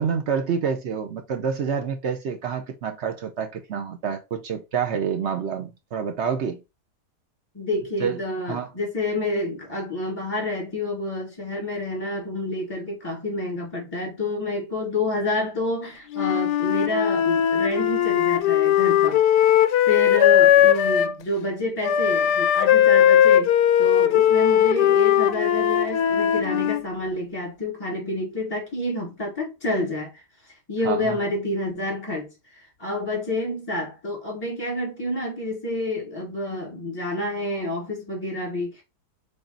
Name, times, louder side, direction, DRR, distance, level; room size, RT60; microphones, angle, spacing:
voice 1, 0.0-6.6 8.0-8.2 8.5-8.7 30.8-31.2, right 7 dB, 60° right, 0.7 m, -27 dB
voice 2, 7.5-19.2 19.9-23.5 23.8-38.8, left 2 dB, 15° left, 1.9 m, -29 dB
Wind instrument woodwind instrument, 16.1-21.1 21.8-26.8, left 10 dB, 80° left, 1.2 m, -18 dB
3.7 x 3.5 x 3.9 m
omnidirectional pair, 1.8 m